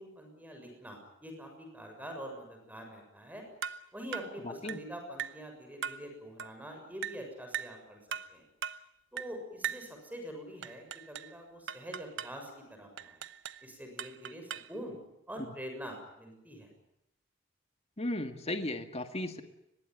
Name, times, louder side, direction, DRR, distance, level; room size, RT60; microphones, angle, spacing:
voice 1, 0.0-3.4 3.9-8.0 8.3-8.4 9.1-13.2 13.6-15.0 15.3-16.7, equal, 10° right, 4 dB, 6.9 m, -45 dB
sound 1, 3.6-3.9 4.1-4.4 4.7-4.9 5.2-5.4 5.8-6.1 6.4-6.6 7.0-7.2 7.5-7.8 8.1-8.3 8.6-8.8 9.2-9.4 9.6-9.9 10.6-11.3 11.7-12.4 13.0-13.6 14.0-14.8, right 8 dB, 65° right, 1.0 m, -39 dB
voice 2, 4.4-4.8 18.0-19.4, left 1 dB, 30° left, 7 dB, 2.0 m, -35 dB
24.0 x 21.0 x 9.2 m, 0.83 s
head